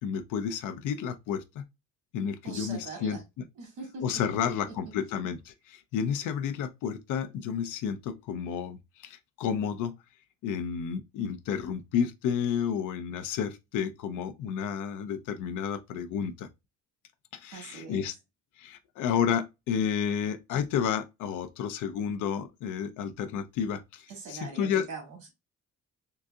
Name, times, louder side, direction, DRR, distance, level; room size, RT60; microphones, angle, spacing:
voice 1, 0.0-1.6 2.1-3.2 4.0-9.9 10.4-16.5 17.3-18.2 18.6-24.9, left 7 dB, 85° left, 0.5 m, -31 dB
voice 2, 2.4-3.2 3.6-4.7 17.5-18.1 24.1-25.3, right 4 dB, 85° right, 1.9 m, -42 dB
3.8 x 2.7 x 2.2 m
cardioid pair, 90°, 30 cm